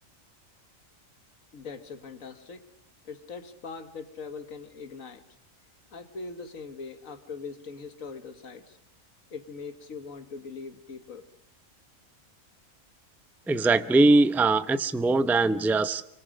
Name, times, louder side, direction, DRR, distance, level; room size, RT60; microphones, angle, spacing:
voice 1, 1.5-2.6 3.1-5.2 5.9-8.8 9.3-11.3, left 4 dB, 75° left, 10 dB, 1.8 m, -41 dB
voice 2, 13.5-16.0, right 2 dB, ahead, 12 dB, 0.5 m, -21 dB
27.0 x 24.5 x 6.3 m, 0.76 s
omnidirectional pair, 1.4 m